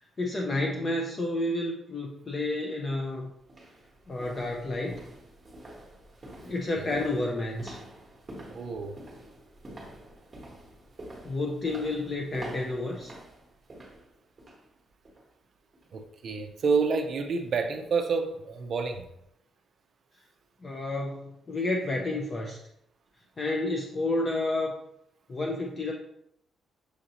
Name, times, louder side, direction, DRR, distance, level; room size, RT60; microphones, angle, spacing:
voice 1, 0.2-3.3 4.1-5.0 6.4-7.8 11.2-13.1 20.6-22.6 23.4-24.7 25.3-25.9, left 2 dB, 30° left, 0 dB, 0.4 m, -30 dB
sound 1, 2.7-2.8 3.4-14.7 15.0-15.3 15.7-15.8, right 1 dB, 20° right, 1.0 m, -47 dB
voice 2, 8.5-9.0 15.9-19.1, right 5 dB, 50° right, 5 dB, 0.4 m, -29 dB
6.3 x 2.6 x 2.8 m, 0.75 s
cardioid pair, 165°, 0 cm